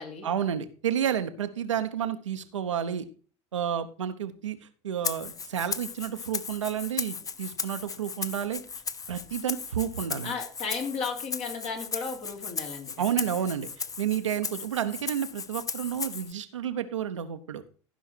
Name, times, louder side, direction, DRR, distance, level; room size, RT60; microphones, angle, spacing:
voice 1, 0.2-3.0 3.5-4.6 4.8-8.6 9.1-10.3 13.0-13.7 14.0-17.6, right 9 dB, 85° right, 8 dB, 0.9 m, -30 dB
Rattle (instrument), 5.0-16.3, left 6 dB, 20° left, 0.6 m, -36 dB
voice 2, 10.2-12.9 13.2-13.4, left 5 dB, 50° left, 2 dB, 3.1 m, -34 dB
14.5 x 5.7 x 4.5 m, 0.40 s
hypercardioid pair, 75°, 15 cm